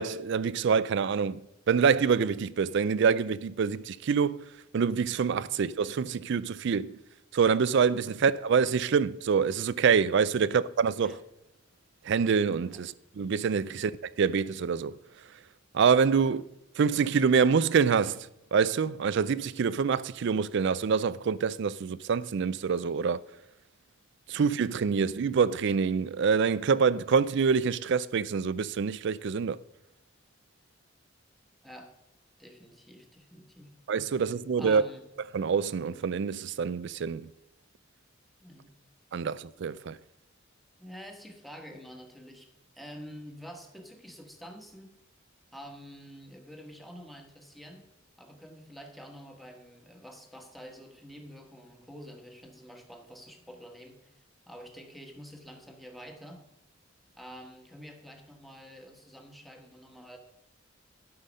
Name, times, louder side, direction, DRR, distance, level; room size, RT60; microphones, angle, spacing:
voice 1, 0.0-1.4 1.7-4.5 4.7-7.0 7.3-11.2 12.0-13.9 14.2-15.0 15.7-16.4 16.8-23.2 24.3-29.6 33.9-34.8 35.3-37.3 39.1-40.0, right 6 dB, 60° right, 0.4 m, -26 dB
voice 2, 32.4-33.7 34.6-35.0 38.4-38.7 40.8-42.5 42.7-44.9 45.5-47.9 48.2-54.2 54.5-56.4 57.2-60.2, equal, ahead, 1.3 m, -47 dB
12.0 x 5.8 x 5.2 m
head